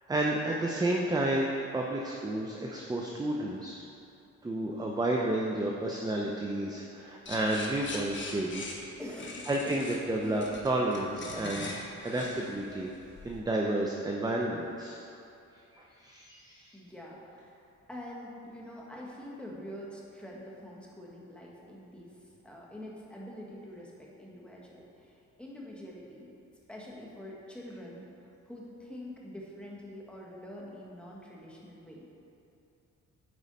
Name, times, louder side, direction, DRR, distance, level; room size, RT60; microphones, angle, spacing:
voice 1, 0.1-3.8 4.4-8.6 9.5-11.7 12.0-12.9 13.2-15.0 15.7-16.7, right 1 dB, 15° right, -1 dB, 0.6 m, -31 dB
sound 1, 7.3-13.4, left 2 dB, 40° left, 1.3 m, -42 dB
voice 2, 9.0-9.8 10.2-10.3 16.7-26.3 26.7-28.1 28.4-32.1, left 1 dB, 5° left, -4 dB, 1.6 m, -45 dB
9.4 x 4.7 x 4.1 m, 2.7 s
cardioid pair, 90°, 30 cm